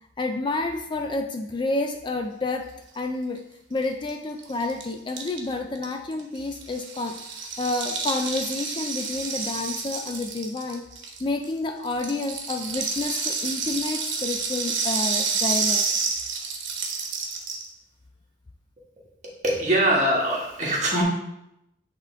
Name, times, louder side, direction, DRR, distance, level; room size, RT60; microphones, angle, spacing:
voice 1, 0.2-2.7 2.9-3.4 3.7-10.8 11.2-15.8, left 2 dB, 25° left, 5 dB, 0.3 m, -29 dB
Rattle (instrument), 3.8-3.9 4.1-4.2 4.4-11.5 11.8-17.7, right 5 dB, 85° right, 1.1 m, -29 dB
voice 2, 19.2-21.0, right 1 dB, 40° right, -3 dB, 1.5 m, -23 dB
8.1 x 3.6 x 3.4 m, 0.83 s
head